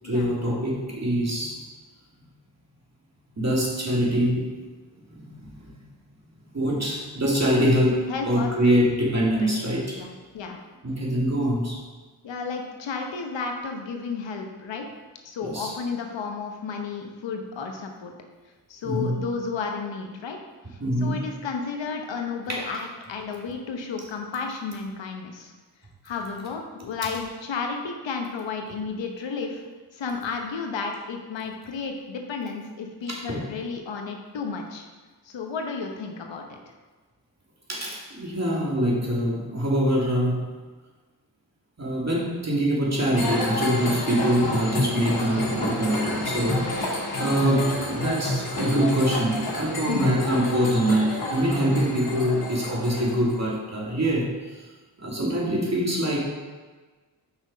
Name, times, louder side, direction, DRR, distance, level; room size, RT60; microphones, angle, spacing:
voice 1, 0.0-1.5 3.4-4.6 5.1-5.4 5.6-5.8 6.5-10.0 10.8-11.8 15.4-15.7 18.8-19.2 20.8-21.2 22.5-22.6 33.1-33.4 37.7-40.5 41.8-54.3 55.0-56.3, equal, 35° right, -4 dB, 2.5 m, -24 dB
voice 2, 8.1-8.8 9.4-10.6 12.2-14.9 15.2-18.1 18.7-20.4 20.7-25.5 26.0-29.6 29.9-34.9 35.2-36.6 49.9-50.2, left 5 dB, 90° left, 3 dB, 1.0 m, -32 dB
sound 1, 43.1-53.4, left 1 dB, 55° left, 2.3 m, -30 dB
6.3 x 5.6 x 4.9 m, 1.3 s
cardioid pair, 50°, 43 cm